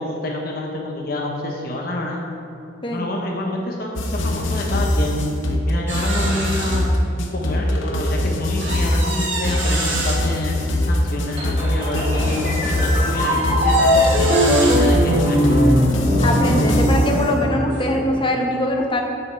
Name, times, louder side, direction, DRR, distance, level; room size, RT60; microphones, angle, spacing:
voice 1, 0.0-2.2 2.9-5.2 5.7-6.8 7.2-10.6 10.9-15.6, left 1 dB, 50° left, 0 dB, 0.9 m, -27 dB
sound 1, 4.0-17.2, left 1 dB, 85° left, 0.9 m, -22 dB
sound 2, 5.9-6.8 7.4-7.5 8.6-10.2 11.6-12.4 13.1-14.8 15.8-17.2 17.7-17.8 18.1-18.3, right 2 dB, 80° right, 1.5 m, -29 dB
sound 3, 11.4-18.1, equal, 30° right, 1.7 m, -20 dB
voice 2, 16.2-19.0, left 1 dB, 25° left, 2 dB, 0.8 m, -22 dB
7.8 x 6.3 x 4.6 m, 2.6 s
head